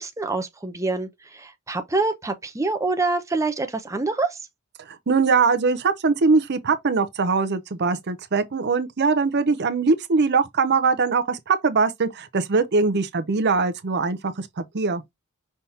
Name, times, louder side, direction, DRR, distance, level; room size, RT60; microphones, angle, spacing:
voice 1, 0.0-4.4, right 3 dB, 15° right, 0.7 m, -26 dB
voice 2, 4.8-15.0, right 4 dB, 50° right, 0.6 m, -22 dB
5.6 x 3.4 x 2.8 m
head